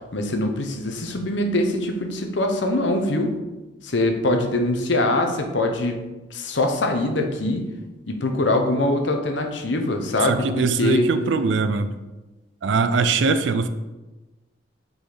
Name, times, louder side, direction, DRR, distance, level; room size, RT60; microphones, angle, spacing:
voice 1, 0.1-3.3 3.8-6.0 6.3-7.6 8.1-11.1, left 1 dB, 65° left, 4 dB, 0.9 m, -23 dB
voice 2, 10.2-11.9 12.6-13.7, right 4 dB, 70° right, 11 dB, 0.4 m, -21 dB
6.0 x 4.0 x 5.0 m, 1.1 s
head